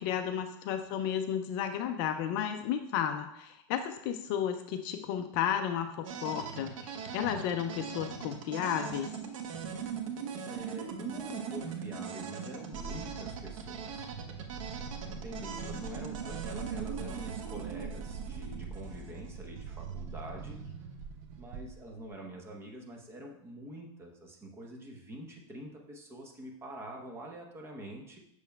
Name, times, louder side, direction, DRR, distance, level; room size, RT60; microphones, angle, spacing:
voice 1, 0.0-9.1, left 9 dB, 45° left, 7 dB, 0.4 m, -33 dB
sound 1, 6.0-19.9, right 6 dB, 75° right, 1.0 m, -41 dB
voice 2, 10.5-14.1 15.0-20.9 21.4-28.2, right 1 dB, 15° right, 1 dB, 0.8 m, -46 dB
sound 2, 12.7-22.1, right 5 dB, 45° right, 0.5 m, -43 dB
6.8 x 6.5 x 2.2 m, 0.78 s
supercardioid pair, 150°, 17 cm